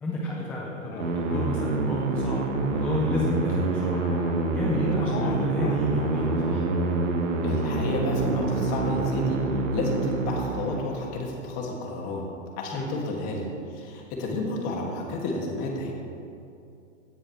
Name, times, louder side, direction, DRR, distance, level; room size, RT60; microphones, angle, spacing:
voice 1, 0.0-4.0 4.5-6.6 12.7-12.9, left 1 dB, 5° left, -4 dB, 0.4 m, -31 dB
sound 1, 0.8-4.4 5.0-9.5, left 5 dB, 85° left, 1.4 m, -40 dB
sound 2, 1.0-11.0, right 3 dB, 75° right, 1.9 m, -27 dB
voice 2, 7.4-9.4 9.7-12.2 12.6-13.5 13.7-15.9, left 2 dB, 35° left, -1 dB, 2.4 m, -31 dB
16.5 x 9.8 x 3.3 m, 2.6 s
hypercardioid pair, 155°, 38 cm